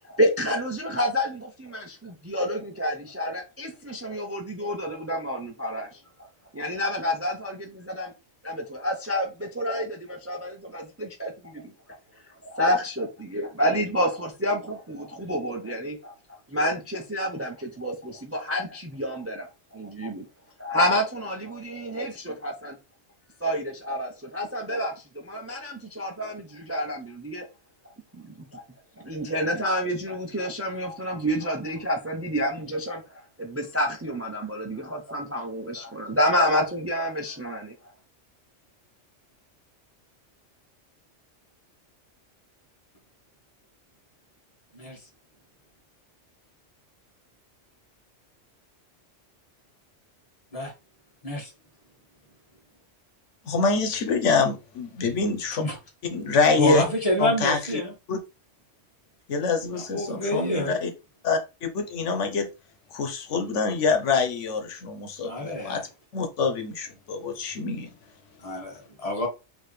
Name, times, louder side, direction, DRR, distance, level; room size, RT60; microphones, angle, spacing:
voice 1, 0.1-6.0 6.5-8.1 8.4-11.7 12.4-16.2 16.5-19.5 19.7-20.2 20.6-22.8 23.4-27.4 28.4-28.6 29.0-37.7, equal, 15° right, 0.5 m, -29 dB
voice 2, 53.4-55.6 56.1-56.8 57.2-57.6 58.1-58.2 59.3-60.9 61.2-62.5 62.9-65.9 66.1-67.9, left 4 dB, 85° left, 1.2 m, -25 dB
voice 3, 56.6-57.9 59.7-60.7 65.2-65.8 68.4-69.3, left 1 dB, 30° left, 1.5 m, -28 dB
4.8 x 2.9 x 3.2 m
omnidirectional pair, 1.2 m